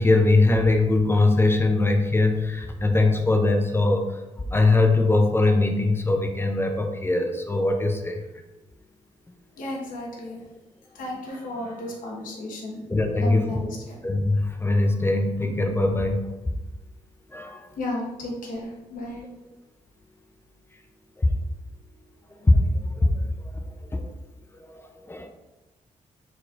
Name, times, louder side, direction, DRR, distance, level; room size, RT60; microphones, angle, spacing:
voice 1, 0.0-4.2 4.5-8.2 12.9-13.5 14.0-16.3 17.3-17.7 21.2-21.3 22.4-23.6 23.9-24.1 24.7-25.3, left 2 dB, 15° left, 4 dB, 0.5 m, -21 dB
voice 2, 9.6-10.4 10.9-12.8 13.2-14.0 17.8-19.2, left 1 dB, 85° left, -2 dB, 1.2 m, -33 dB
4.3 x 4.3 x 2.5 m, 1.0 s
cardioid pair, 85°, 14 cm